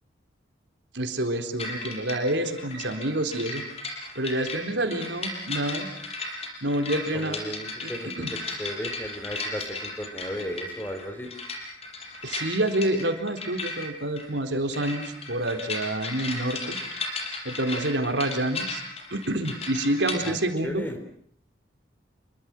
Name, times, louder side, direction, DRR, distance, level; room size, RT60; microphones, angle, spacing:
voice 1, 0.9-3.6 4.2-5.9 6.6-7.4 7.8-8.3 12.2-16.8 17.4-18.8 19.1-20.9, right 1 dB, 75° right, 5 dB, 4.1 m, -28 dB
sound 1, 1.6-20.3, left 3 dB, 35° left, 5.1 m, -35 dB
voice 2, 7.1-8.1 8.5-11.3 20.2-20.4 20.6-21.0, equal, 10° left, 6 dB, 4.2 m, -35 dB
29.0 x 24.0 x 6.2 m, 0.64 s
head